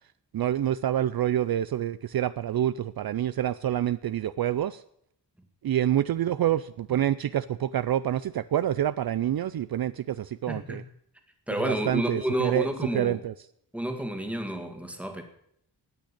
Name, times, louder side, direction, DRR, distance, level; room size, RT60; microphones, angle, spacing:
voice 1, 0.3-4.8 5.6-10.8 11.6-13.3, right 11 dB, 60° right, 15 dB, 0.5 m, -27 dB
voice 2, 10.5-10.8 11.5-13.2 13.7-15.2, right 1 dB, 5° right, 4 dB, 1.9 m, -30 dB
18.5 x 6.5 x 8.6 m, 0.70 s
wide cardioid pair, 160°, 41 cm